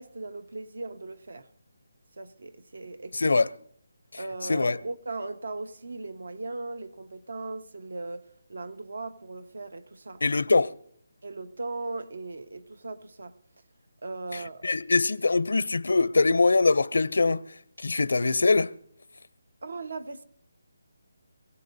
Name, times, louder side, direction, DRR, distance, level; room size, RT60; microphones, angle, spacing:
voice 1, 0.0-1.5 2.2-3.5 4.2-10.2 11.2-13.3 14.0-14.7 19.6-20.2, right 3 dB, 70° right, 1.2 m, -38 dB
voice 2, 3.1-3.5 4.1-4.2 4.5-4.8 10.2-10.7 14.3-17.4 17.8-18.7, left 3 dB, 75° left, 0.5 m, -23 dB
26.5 x 17.0 x 2.7 m
hypercardioid pair, 175°, 0 cm